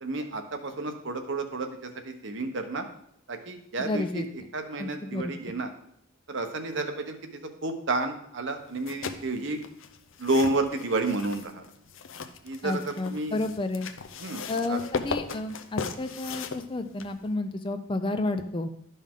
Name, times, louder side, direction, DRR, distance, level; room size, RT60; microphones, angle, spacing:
voice 1, 0.0-2.9 3.3-4.2 4.5-5.7 6.3-7.2 7.6-9.6 10.2-11.6 12.4-13.4 14.2-14.8, right 2 dB, 60° right, 6 dB, 0.9 m, -30 dB
voice 2, 3.9-4.3 4.8-5.3 12.6-13.9 14.5-18.7, left 2 dB, 25° left, 8 dB, 0.4 m, -31 dB
sound 1, 8.7-17.3, left 5 dB, 65° left, 0.6 m, -38 dB
11.5 x 5.5 x 3.6 m, 0.69 s
head